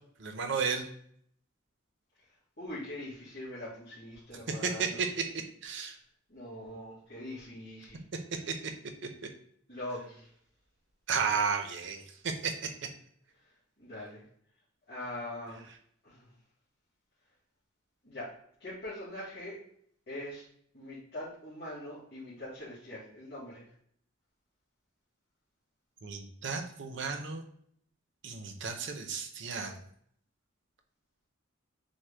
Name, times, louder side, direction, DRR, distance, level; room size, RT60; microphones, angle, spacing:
voice 1, 0.2-0.8 4.6-5.1 5.6-6.0 8.5-8.6 11.1-12.5 26.0-27.4 28.2-29.7, right 5 dB, 60° right, 5 dB, 0.7 m, -33 dB
voice 2, 2.6-5.0 6.3-8.0 9.7-10.3 13.8-14.2 14.9-15.7 16.0-16.3 18.0-18.3 18.6-19.6 20.1-20.4 20.7-23.6, left 1 dB, 55° left, -10 dB, 1.8 m, -42 dB
6.3 x 2.2 x 3.3 m, 0.65 s
head